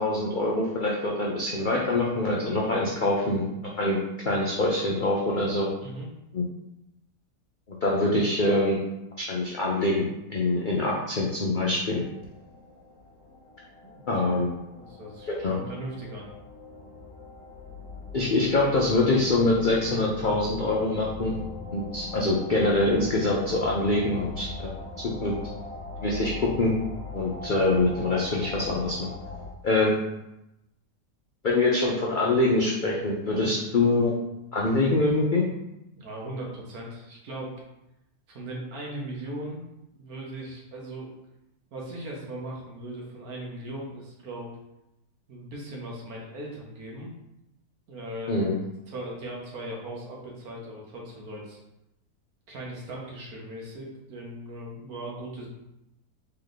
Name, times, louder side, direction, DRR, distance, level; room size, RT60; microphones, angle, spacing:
voice 1, 0.0-3.4 3.8-4.0 4.2-5.7 6.3-6.4 7.8-8.8 9.2-10.0 10.3-12.0 14.1-14.5 15.3-15.5 18.1-21.4 21.7-24.7 25.2-25.3 26.0-26.7 27.1-29.0 29.6-29.9 31.4-34.1 34.5-35.4 48.3-48.6, left 2 dB, 75° left, -3 dB, 0.4 m, -24 dB
sound 1, 11.1-29.5, left 4 dB, 50° left, 1.3 m, -41 dB
voice 2, 13.8-14.4 14.8-16.3 33.3-33.5 35.9-37.5 38.3-39.6 39.9-41.1 41.7-44.5 45.3-47.1 47.9-48.4 48.9-51.6 52.5-55.5, right 1 dB, 65° right, -2 dB, 1.6 m, -38 dB
3.8 x 3.3 x 3.9 m, 0.88 s
omnidirectional pair, 1.8 m